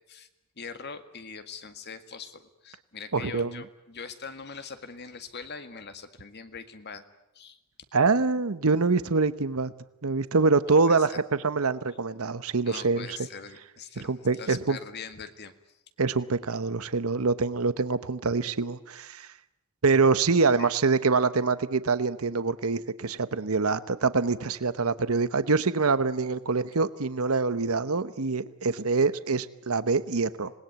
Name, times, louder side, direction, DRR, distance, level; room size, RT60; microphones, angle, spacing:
voice 1, 0.6-7.0 7.3-7.6 10.8-11.2 12.7-15.8 20.6-20.7, left 5 dB, 50° left, 9 dB, 1.9 m, -42 dB
voice 2, 3.1-3.6 7.9-9.7 10.0-13.1 14.0-14.8 16.0-19.3 19.8-30.5, right 4 dB, 85° right, 14 dB, 1.0 m, -25 dB
26.5 x 20.0 x 9.3 m, 0.89 s
head